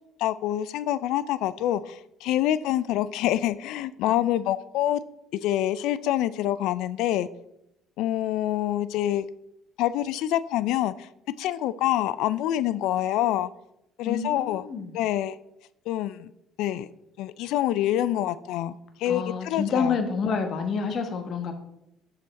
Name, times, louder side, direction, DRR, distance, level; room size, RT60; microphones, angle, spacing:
voice 1, 0.2-5.0 5.4-7.3 8.0-9.3 9.8-11.1 11.4-13.5 14.0-14.6 14.9-15.4 15.9-16.3 16.6-16.9 17.2-20.0, left 12 dB, 70° left, 16 dB, 0.3 m, -26 dB
voice 2, 14.0-14.9 19.0-21.5, left 5 dB, 55° left, 6 dB, 1.2 m, -28 dB
6.3 x 5.8 x 4.1 m, 0.82 s
hypercardioid pair, 65°, 0 cm